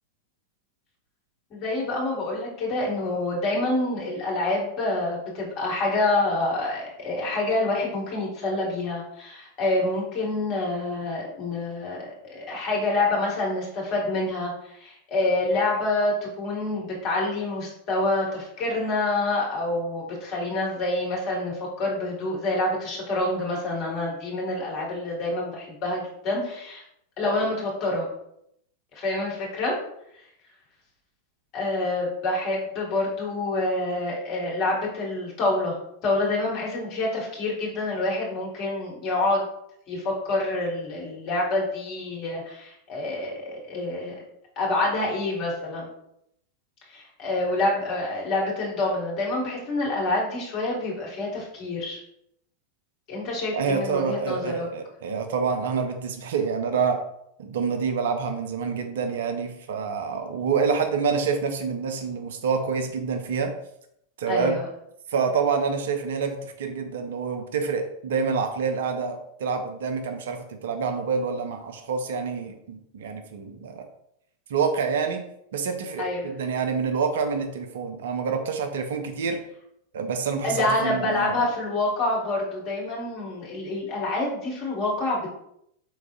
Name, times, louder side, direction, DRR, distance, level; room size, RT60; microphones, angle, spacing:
voice 1, 1.5-26.8 27.2-28.1 28.9-29.8 31.5-39.4 39.9-44.1 44.5-45.9 46.9-52.0 53.1-54.7 64.3-64.7 76.0-76.3 80.4-85.3, left 2 dB, 35° left, -2 dB, 1.5 m, -27 dB
voice 2, 53.5-57.0 57.4-63.5 64.2-64.6 65.1-73.9 74.5-75.2 75.5-79.4 79.9-81.5, right 5 dB, 60° right, 6 dB, 0.5 m, -27 dB
4.7 x 3.5 x 2.4 m, 0.74 s
figure-of-eight pair, 90°, 0 cm